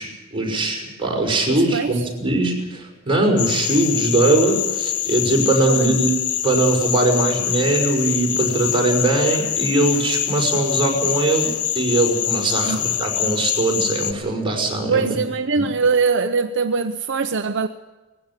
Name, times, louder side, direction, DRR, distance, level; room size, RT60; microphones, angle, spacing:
voice 1, 0.0-6.1 6.4-15.2 15.6-15.7, right 2 dB, 25° right, 5.6 m, -21 dB
voice 2, 1.5-1.9 5.7-6.0 12.6-12.8 14.9-17.7, right 4 dB, 55° right, 0.7 m, -22 dB
sound 1, 3.4-14.1, left 11 dB, 80° left, 1.2 m, -24 dB
20.0 x 15.5 x 9.7 m
head